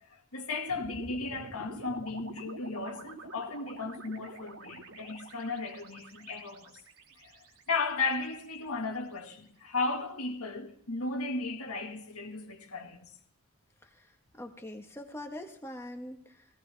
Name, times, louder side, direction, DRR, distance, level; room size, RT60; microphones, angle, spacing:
voice 1, 0.1-6.8 7.2-7.3 7.7-13.1, left 3 dB, 90° left, 1.9 m, -35 dB
sound 1, 0.7-9.0, right 2 dB, 85° right, 3.0 m, -48 dB
voice 2, 14.4-16.5, left 1 dB, 10° left, 1.5 m, -43 dB
17.5 x 17.5 x 3.5 m
head